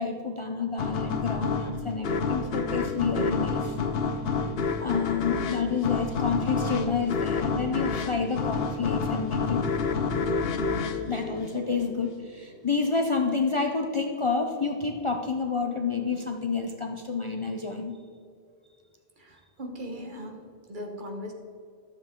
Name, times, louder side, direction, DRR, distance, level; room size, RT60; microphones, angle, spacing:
voice 1, 0.0-3.8 4.8-9.6 11.1-18.0, left 5 dB, 40° left, 3 dB, 0.5 m, -29 dB
sound 1, 0.8-12.1, left 4 dB, 70° left, 0.9 m, -29 dB
voice 2, 19.2-21.3, equal, 50° right, 2 dB, 1.3 m, -39 dB
12.0 x 7.3 x 3.7 m, 2.4 s
omnidirectional pair, 1.1 m